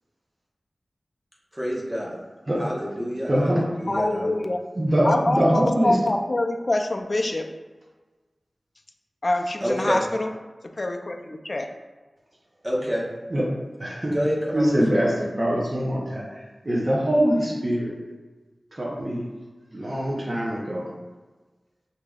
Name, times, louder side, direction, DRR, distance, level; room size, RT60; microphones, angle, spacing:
voice 1, 1.5-2.1 2.6-4.3 9.6-10.1 12.6-13.1 14.1-14.8, equal, 15° right, -5 dB, 1.0 m, -27 dB
voice 2, 3.3-3.6 4.7-6.0 13.3-13.4 13.8-14.1 14.5-17.9 18.7-19.2 19.7-20.9, equal, 40° right, -5 dB, 0.8 m, -23 dB
voice 3, 3.8-4.6 5.0-7.5 9.2-10.3 10.8-11.7, left 2 dB, 45° left, 4 dB, 0.4 m, -25 dB
6.4 x 2.8 x 2.4 m, 1.3 s
wide cardioid pair, 80°, 0 cm